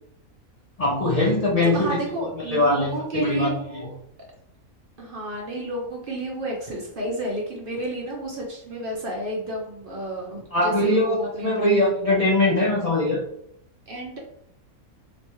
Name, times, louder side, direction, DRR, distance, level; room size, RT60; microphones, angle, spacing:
voice 1, 0.8-3.9 10.5-11.2 11.4-13.2, left 1 dB, 50° left, -4 dB, 0.4 m, -22 dB
voice 2, 1.6-3.9 5.0-11.8 13.9-14.2, right 1 dB, 50° right, -1 dB, 0.7 m, -31 dB
3.2 x 3.1 x 3.0 m, 0.72 s
omnidirectional pair, 1.5 m